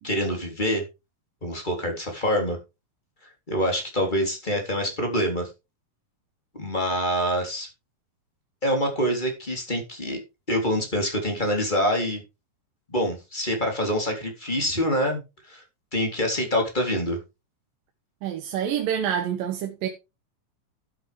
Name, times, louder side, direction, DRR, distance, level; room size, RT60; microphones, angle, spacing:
voice 1, 0.0-0.8 1.4-2.6 3.5-5.5 6.5-7.7 8.6-10.2 10.5-12.2 12.9-15.2 15.5-15.6 15.9-17.2, equal, 15° left, 3.4 m, -25 dB
voice 2, 18.2-19.9, right 9 dB, 85° right, 2.9 m, -27 dB
12.5 x 8.8 x 3.5 m
omnidirectional pair, 3.9 m